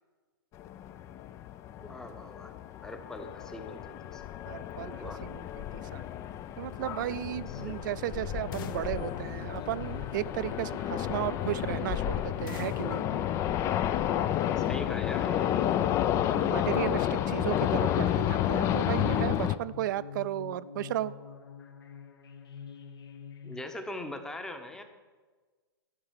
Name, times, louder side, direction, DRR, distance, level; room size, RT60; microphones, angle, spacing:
sound 1, 0.5-19.6, left 11 dB, 25° left, 0.3 m, -31 dB
voice 1, 1.8-2.6 2.8-4.3 5.0-5.2 7.6-7.9 14.6-15.7 23.4-24.8, left 1 dB, 5° left, 7 dB, 0.8 m, -41 dB
voice 2, 4.5-6.0 6.6-13.0 16.3-21.1, right 13 dB, 55° right, 17 dB, 0.4 m, -34 dB
sound 2, 7.3-23.6, left 7 dB, 75° left, 1.0 m, -46 dB
sound 3, 8.5-10.3 12.5-14.2, left 8 dB, 55° left, 0.7 m, -48 dB
11.5 x 5.5 x 5.6 m, 1.4 s
hypercardioid pair, 125°, 13 cm